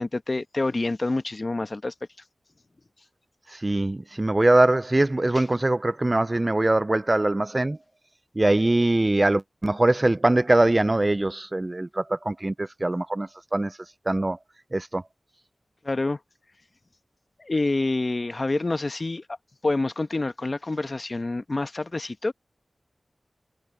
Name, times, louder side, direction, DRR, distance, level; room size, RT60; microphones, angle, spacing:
voice 1, 0.0-1.9 15.8-16.2 17.4-19.2 19.6-22.3, left 2 dB, 45° left, 1.1 m, -27 dB
voice 2, 3.5-7.8 8.4-13.8 14.1-14.4 14.7-15.0, right 2 dB, 30° right, 0.3 m, -22 dB
wide cardioid pair, 65°, 0 cm